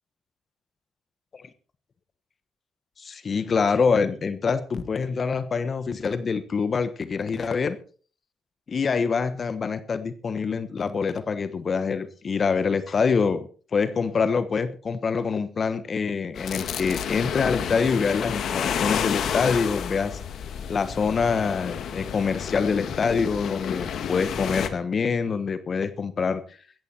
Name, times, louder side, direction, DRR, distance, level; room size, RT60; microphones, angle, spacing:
voice 1, 3.0-7.8 8.7-13.5 13.7-20.2 20.7-26.6, left 5 dB, 45° left, 12 dB, 1.3 m, -25 dB
sound 1, 16.4-24.7, left 8 dB, 70° left, 2.0 m, -30 dB
17.5 x 14.0 x 4.4 m, 0.41 s
cardioid pair, 90°, 0 cm